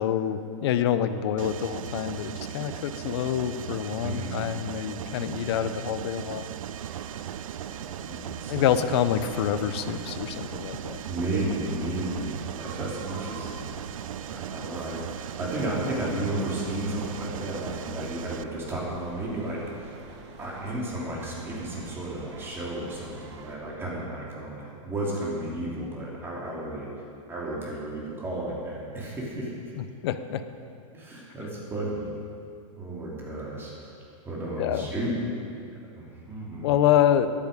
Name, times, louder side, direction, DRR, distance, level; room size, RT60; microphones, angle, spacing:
voice 1, 0.0-6.5 8.5-11.0 29.8-30.4 34.6-34.9 36.6-37.3, left 10 dB, 50° left, 11 dB, 0.8 m, -26 dB
Mechanisms, 1.4-18.4, right 11 dB, 80° right, 0.5 m, -38 dB
voice 2, 4.0-4.4 8.0-8.8 11.1-13.8 14.3-19.9 20.4-26.9 27.3-29.5 30.9-32.1 32.7-33.9 34.2-35.2 36.0-36.8, right 1 dB, 15° right, -5 dB, 3.0 m, -33 dB
sound 1, 6.7-23.6, right 4 dB, 55° right, 1.7 m, -46 dB
14.0 x 11.0 x 5.3 m, 2.5 s
hypercardioid pair, 150°, 17 cm